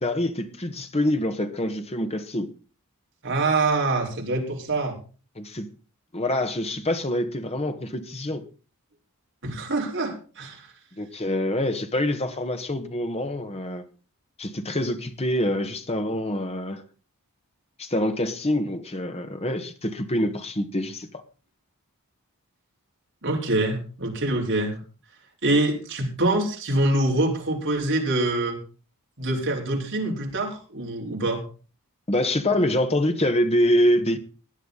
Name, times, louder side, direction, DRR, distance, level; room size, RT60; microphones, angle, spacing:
voice 1, 0.0-2.5 5.4-5.7 6.1-8.4 11.0-13.8 14.4-16.8 17.8-21.2 32.1-34.2, left 1 dB, 30° left, 1.5 m, -25 dB
voice 2, 3.2-5.0 9.4-10.7 23.2-24.8 25.4-28.6 29.2-31.4, right 2 dB, 55° right, 4.4 m, -25 dB
17.0 x 10.5 x 4.0 m
head